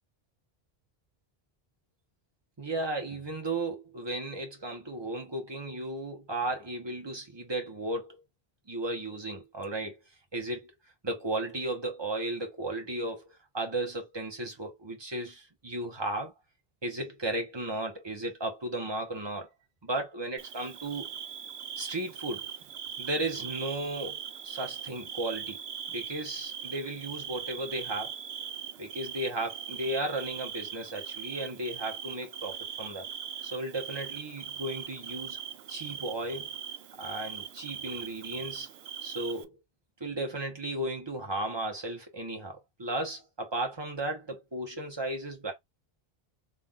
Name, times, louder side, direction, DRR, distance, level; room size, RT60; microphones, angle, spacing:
voice 1, 2.6-8.2 8.7-10.0 10.3-10.7 11.0-13.3 13.5-16.3 16.8-19.5 19.8-21.1 21.8-22.5 23.0-25.6 25.9-28.1 28.8-33.1 33.4-35.4 35.7-36.5 37.0-38.7 39.0-39.5 40.0-45.5, right 2 dB, 25° right, 1.2 m, -35 dB
Bird / Cricket, 20.4-39.4, right 8 dB, 85° right, 0.8 m, -40 dB
3.5 x 2.6 x 3.8 m
omnidirectional pair, 1.0 m